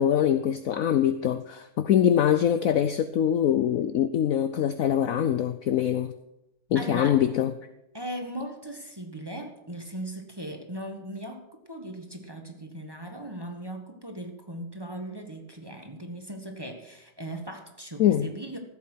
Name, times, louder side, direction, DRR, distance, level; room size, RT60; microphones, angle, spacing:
voice 1, 0.0-6.1 6.7-7.5 18.0-18.3, left 10 dB, 70° left, 11 dB, 0.8 m, -23 dB
voice 2, 6.7-7.2 7.9-18.6, right 1 dB, 15° right, 4 dB, 1.3 m, -38 dB
15.0 x 8.5 x 6.3 m, 0.87 s
omnidirectional pair, 2.0 m